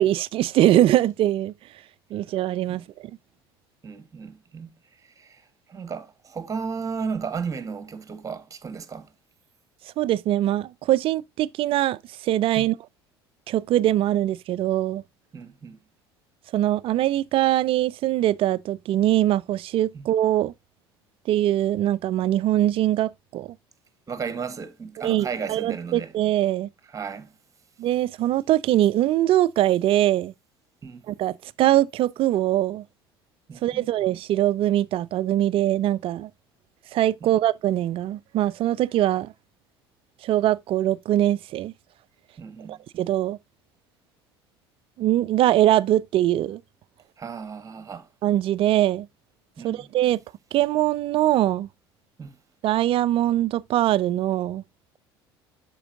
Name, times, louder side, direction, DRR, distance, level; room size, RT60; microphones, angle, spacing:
voice 1, 0.0-1.5 2.1-3.1 10.0-12.7 13.5-15.0 16.5-20.5 21.3-23.5 25.0-26.7 27.8-30.3 31.1-32.8 33.6-36.3 36.9-39.3 40.2-41.7 42.7-43.4 45.0-46.6 48.2-49.1 49.6-50.2 50.5-51.7 52.6-54.6, right 13 dB, 45° right, 0.4 m, -22 dB
voice 2, 3.8-4.7 5.0-9.1 12.5-12.7 15.3-15.8 19.9-20.1 24.1-26.1 26.9-27.3 30.8-31.0 33.5-33.9 37.2-37.4 42.4-42.8 47.2-48.1 49.6-49.9 52.2-52.4, right 5 dB, 25° right, 1.3 m, -34 dB
12.0 x 4.6 x 2.6 m
figure-of-eight pair, 65°, 13 cm